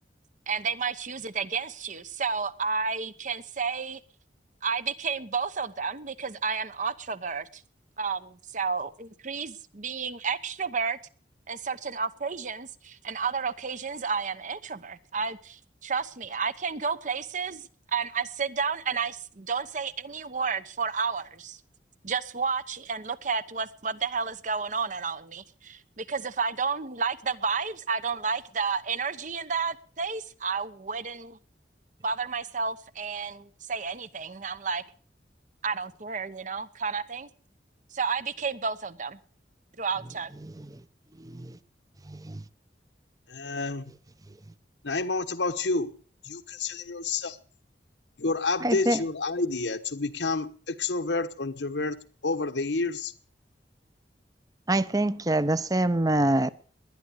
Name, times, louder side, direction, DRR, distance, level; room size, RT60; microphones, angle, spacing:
voice 1, 0.5-4.0 4.6-7.6 8.0-11.0 11.5-21.6 22.0-31.4 32.0-34.8 35.6-37.3 37.9-39.2 39.8-40.3, right 5 dB, 45° right, 1.0 m, -31 dB
voice 2, 41.2-41.6 42.1-42.4 48.6-49.0 54.7-56.5, right 1 dB, 20° right, 0.7 m, -25 dB
voice 3, 43.3-43.9 44.8-45.9 46.2-47.4 48.2-52.0 52.2-53.1, left 3 dB, 85° left, 1.2 m, -29 dB
20.0 x 10.5 x 6.4 m
head